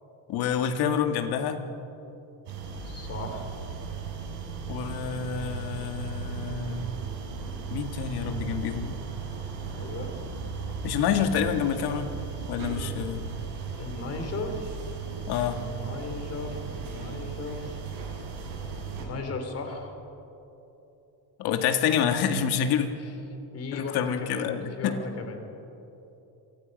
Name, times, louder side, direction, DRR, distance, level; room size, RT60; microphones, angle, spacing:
voice 1, 0.3-1.6 4.7-6.9 7.7-9.0 10.8-12.1 12.5-13.2 15.3-15.6 21.4-22.9 23.7-25.0, left 8 dB, 60° left, 6 dB, 1.9 m, -27 dB
sound 1, 2.5-19.1, right 5 dB, 65° right, 6.7 m, -36 dB
voice 2, 2.8-3.5 9.7-10.2 13.8-14.8 15.3-17.8 19.0-19.9 23.0-23.1 23.5-25.4, left 3 dB, 35° left, 5 dB, 3.1 m, -36 dB
26.5 x 24.5 x 5.4 m, 3.0 s
cardioid pair, 175°, 43 cm